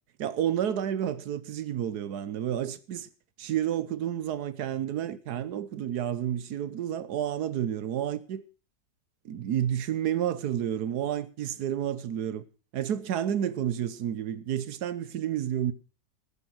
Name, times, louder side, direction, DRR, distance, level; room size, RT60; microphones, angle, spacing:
voice 1, 0.2-3.1 3.4-8.4 9.2-12.4 12.7-15.7, right 10 dB, 65° right, 1.3 m, -30 dB
12.5 x 9.7 x 6.0 m
omnidirectional pair, 1.9 m